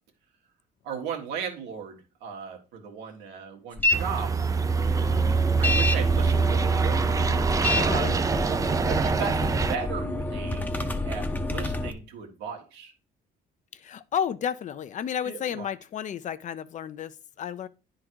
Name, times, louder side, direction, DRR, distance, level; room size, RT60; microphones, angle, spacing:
voice 1, 0.8-4.4 4.9-5.3 5.6-7.1 7.7-8.1 8.9-12.9 15.2-15.7, right 6 dB, 90° right, 1.6 m, -36 dB
sound 1, 3.8-4.0 4.4-11.9, left 2 dB, 10° left, 0.7 m, -29 dB
sound 2, 3.9-9.8, right 5 dB, 20° right, 0.4 m, -24 dB
voice 2, 7.8-8.2 13.7-17.7, left 8 dB, 45° left, 0.6 m, -32 dB
9.8 x 3.8 x 4.6 m
cardioid pair, 110°, 17 cm